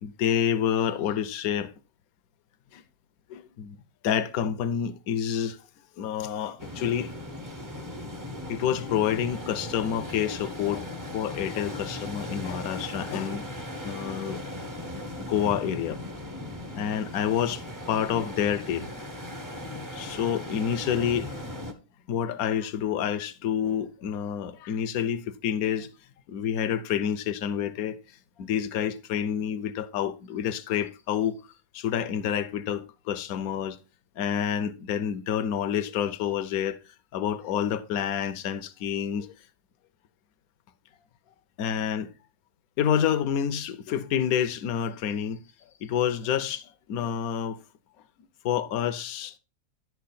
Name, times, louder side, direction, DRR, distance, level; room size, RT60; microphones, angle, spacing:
voice 1, 0.0-1.7 2.7-2.8 3.3-3.8 4.0-5.6 6.0-7.1 8.5-10.9 11.1-13.5 13.8-14.4 15.2-16.0 16.7-17.6 17.9-19.1 19.9-21.4 22.1-25.9 26.3-28.0 28.4-31.5 31.7-33.8 34.2-36.8 37.1-39.3 41.6-42.1 42.8-45.4 45.8-47.6 48.4-49.4, left 9 dB, 70° left, 1.1 m, -28 dB
sound 1, 6.6-21.7, left 1 dB, 15° right, 0.7 m, -38 dB
11.0 x 4.7 x 4.1 m
omnidirectional pair, 1.6 m